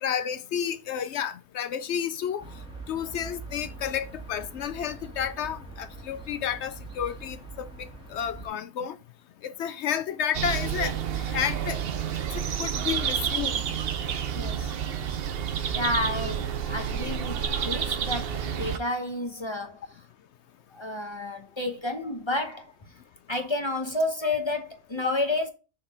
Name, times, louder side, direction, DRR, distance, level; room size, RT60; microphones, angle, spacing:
voice 1, 0.0-2.4 2.9-9.0 9.4-11.0 11.3-11.8 12.3-13.6, left 8 dB, 65° left, 0.8 m, -31 dB
sound 1, 2.4-8.5, right 3 dB, 5° right, 1.7 m, -43 dB
sound 2, 10.3-18.8, right 8 dB, 55° right, 0.8 m, -29 dB
voice 2, 14.3-14.7 15.7-17.4 17.6-19.8 20.7-23.0 23.3-25.5, left 2 dB, 25° left, 0.7 m, -30 dB
6.6 x 3.8 x 3.9 m
omnidirectional pair, 1.3 m